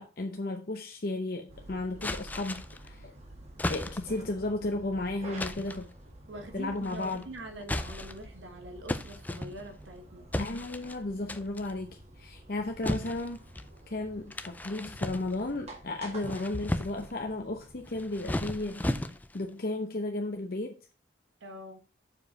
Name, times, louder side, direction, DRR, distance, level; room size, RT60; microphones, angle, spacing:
voice 1, 0.0-3.1 3.7-5.9 6.5-7.2 10.4-13.4 13.9-18.8 19.3-20.8, left 2 dB, 55° left, 0.7 m, -34 dB
sound 1, 1.5-18.4, right 1 dB, 35° right, 1.7 m, -50 dB
sound 2, 2.0-2.9 3.6-4.2 5.4-5.9 6.8-7.2 7.6-8.3 8.9-9.9 10.3-11.0 11.3-11.7 12.8-13.7 14.3-15.6 16.1-17.1 17.9-19.5, left 1 dB, 10° left, 0.4 m, -35 dB
voice 2, 6.3-10.3 21.4-21.8, right 1 dB, 85° right, 1.2 m, -44 dB
7.0 x 4.8 x 4.7 m
head